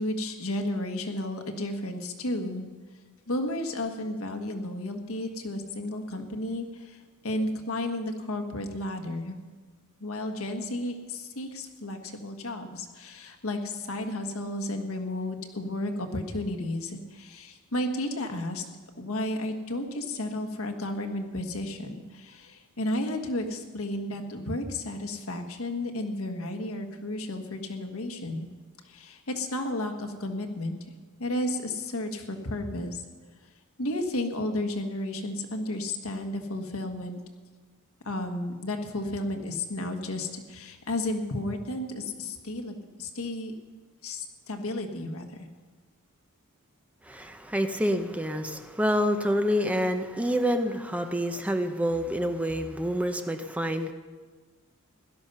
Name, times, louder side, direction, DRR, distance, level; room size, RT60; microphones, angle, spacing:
voice 1, 0.0-2.7 3.3-9.4 10.0-18.6 19.0-28.5 28.8-30.8 31.2-33.0 33.8-37.2 38.0-43.5 44.0-45.3, left 1 dB, 70° left, 4 dB, 1.5 m, -33 dB
voice 2, 47.1-53.9, equal, 5° right, 7 dB, 0.7 m, -27 dB
16.5 x 12.0 x 5.6 m, 1.4 s
head